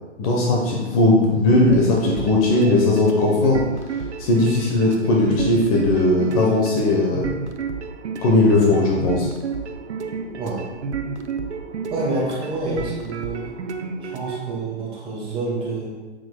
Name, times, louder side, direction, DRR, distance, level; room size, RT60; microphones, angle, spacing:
voice 1, 0.2-3.6 4.2-7.4 8.2-9.3, left 2 dB, 30° left, -2 dB, 1.1 m, -18 dB
sound 1, 1.5-14.4, right 5 dB, 80° right, 0.7 m, -30 dB
voice 2, 11.9-13.5 14.0-15.9, right 2 dB, 15° right, -5 dB, 1.7 m, -27 dB
7.6 x 6.0 x 2.3 m, 1.3 s
hypercardioid pair, 135°, 34 cm